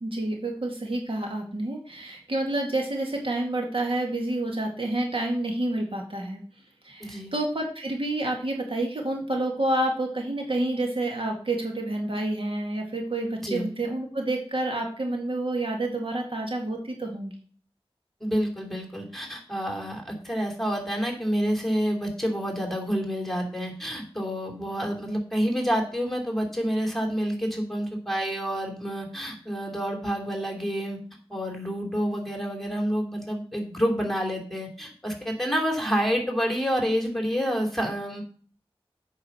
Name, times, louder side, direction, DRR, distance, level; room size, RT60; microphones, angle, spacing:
voice 1, 0.0-6.4 6.8-17.3, right 1 dB, 60° right, 1 dB, 2.0 m, -29 dB
voice 2, 7.0-7.3 13.4-13.7 18.2-31.0 31.3-38.2, equal, ahead, 0 dB, 2.9 m, -28 dB
8.4 x 5.5 x 6.1 m, 0.44 s
wide cardioid pair, 55°, 10 cm